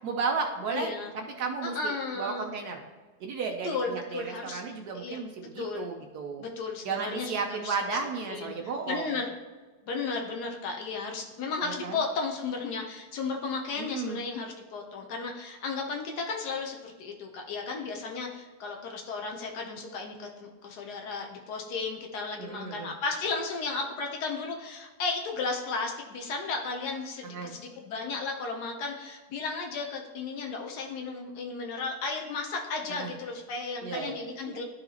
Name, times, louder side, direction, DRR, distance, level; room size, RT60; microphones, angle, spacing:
voice 1, 0.0-0.9 1.1-2.8 3.2-6.5 6.8-9.1 11.6-12.0 13.8-14.2 22.4-22.9 27.2-27.5 32.9-33.1 33.8-34.1 34.5-34.6, right 5 dB, 85° right, 2 dB, 1.3 m, -34 dB
voice 2, 0.7-1.1 1.6-2.4 3.6-4.6 4.9-5.2 5.6-5.9 6.4-7.7 8.3-8.5 8.8-9.3 9.8-34.6, left 4 dB, 85° left, 2 dB, 1.4 m, -34 dB
12.0 x 4.0 x 2.9 m, 1.3 s
omnidirectional pair, 1.7 m